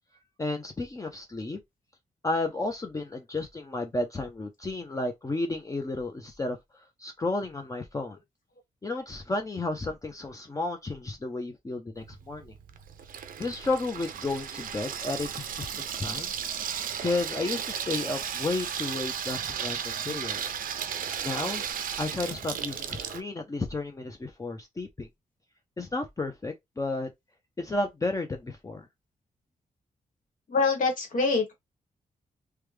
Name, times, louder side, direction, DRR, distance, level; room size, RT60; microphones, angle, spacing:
voice 1, 0.4-1.6 2.2-6.6 7.0-8.2 8.8-12.5 13.4-16.3 17.0-20.6 21.2-21.6 22.0-25.1 25.8-27.1 27.6-28.9, left 2 dB, 25° left, 0.6 m, -32 dB
Water tap faucet / Sink (filling or washing), 12.0-23.2, right 8 dB, 75° right, 0.5 m, -34 dB
voice 2, 30.5-31.5, left 4 dB, 65° left, 1.4 m, -25 dB
3.3 x 2.2 x 3.2 m
cardioid pair, 90°, 15 cm